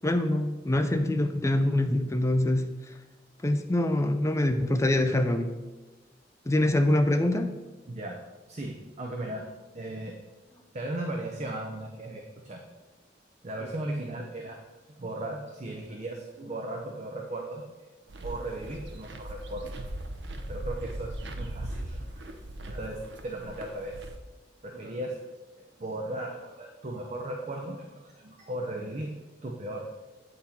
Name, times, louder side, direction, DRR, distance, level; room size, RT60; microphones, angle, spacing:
voice 1, 0.0-2.7 3.4-5.6 6.5-7.6, left 1 dB, 15° left, 8 dB, 0.4 m, -25 dB
voice 2, 7.9-8.2 8.5-10.1 10.7-12.7 13.4-14.6 15.0-17.9 18.2-19.7 20.3-22.1 22.7-24.0 24.6-25.2 25.6-29.1 29.4-29.9, right 1 dB, 40° right, 1 dB, 0.6 m, -37 dB
sound 1, 18.1-24.2, right 1 dB, 75° right, 0.7 m, -39 dB
8.4 x 4.0 x 4.3 m, 1.2 s
head